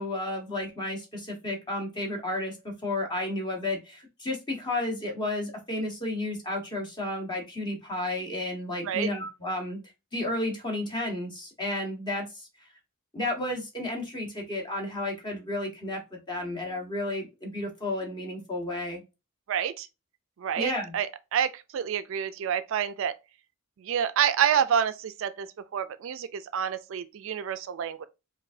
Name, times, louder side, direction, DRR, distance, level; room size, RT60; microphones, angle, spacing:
voice 1, 0.0-9.8 10.1-12.5 13.1-16.0 16.3-19.0 20.6-20.9, left 1 dB, 20° left, 1.1 m, -32 dB
voice 2, 19.5-19.9 20.4-23.1 23.8-25.5 25.7-28.1, right 8 dB, 60° right, 0.3 m, -28 dB
4.7 x 2.6 x 2.5 m
head